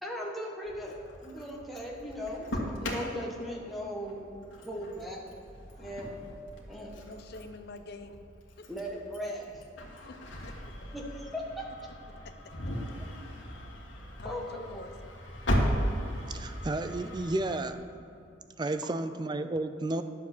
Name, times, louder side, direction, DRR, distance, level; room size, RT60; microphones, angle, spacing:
voice 1, 0.0-4.2 4.6-5.2 5.8-6.1 6.7-6.9 8.7-9.6 10.9-11.6 14.0-14.8 18.7-18.8, equal, ahead, -3 dB, 1.4 m, -38 dB
Engine starting, 0.7-17.6, equal, 75° left, 1.7 m, -37 dB
voice 2, 7.1-8.2 8.6-8.7 10.1-10.5 12.2-12.5 14.2-15.1, left 2 dB, 55° left, 8 dB, 0.7 m, -46 dB
voice 3, 16.3-17.8 18.6-20.0, right 2 dB, 20° right, 10 dB, 0.4 m, -32 dB
10.5 x 7.3 x 6.0 m, 2.7 s
head